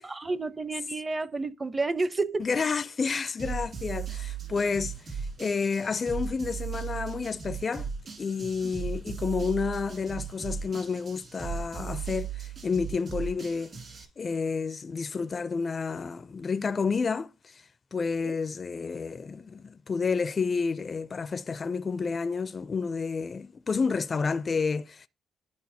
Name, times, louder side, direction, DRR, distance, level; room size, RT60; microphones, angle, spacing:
voice 1, 0.0-2.5 18.2-18.3, right 3 dB, 25° right, 0.6 m, -30 dB
voice 2, 2.4-7.9 8.2-13.7 14.2-17.6 17.9-25.1, left 5 dB, 35° left, 0.4 m, -30 dB
sound 1, 3.4-14.0, right 7 dB, 50° right, 2.0 m, -37 dB
11.5 x 4.6 x 2.7 m
cardioid pair, 90°, 0 cm